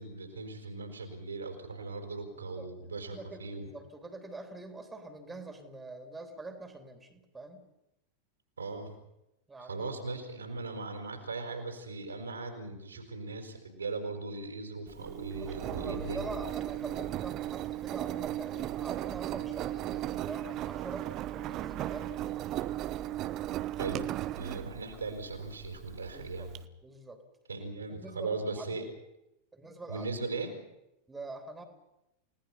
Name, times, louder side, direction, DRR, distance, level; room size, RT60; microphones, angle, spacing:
voice 1, 0.0-3.7 8.6-8.9 9.6-16.3 23.7-24.1 24.4-26.5 27.5-28.8 29.9-30.5, right 3 dB, 75° right, 4 dB, 4.6 m, -38 dB
voice 2, 2.3-2.7 2.9-7.7 9.5-9.9 15.4-22.5 26.1-26.5 26.8-27.2 27.9-28.7 29.5-30.1 31.1-31.6, right 2 dB, 10° right, 6 dB, 3.5 m, -45 dB
Engine, 14.9-26.6, right 13 dB, 35° right, 1.0 m, -36 dB
29.5 x 18.0 x 5.8 m, 0.89 s
figure-of-eight pair, 90°, 0 cm